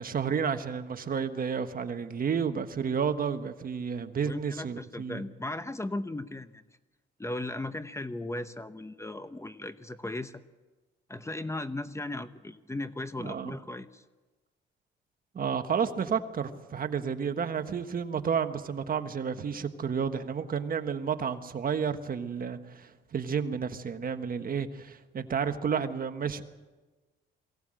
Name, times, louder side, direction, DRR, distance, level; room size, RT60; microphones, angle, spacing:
voice 1, 0.0-5.2 13.2-13.6 15.3-26.4, right 6 dB, 45° right, 8 dB, 1.4 m, -31 dB
voice 2, 4.2-6.6 7.2-10.4 11.1-14.0, left 2 dB, 15° left, 11 dB, 0.8 m, -37 dB
22.5 x 17.5 x 7.8 m, 1.2 s
cardioid pair, 90°, 20 cm